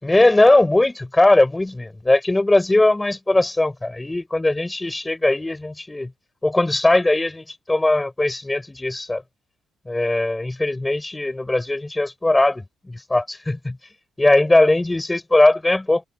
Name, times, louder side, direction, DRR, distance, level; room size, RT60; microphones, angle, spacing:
voice 1, 0.0-6.1 6.4-9.2 9.9-13.8 14.2-16.0, left 2 dB, 15° left, 6.1 m, -19 dB
cardioid pair, 105°, 0 cm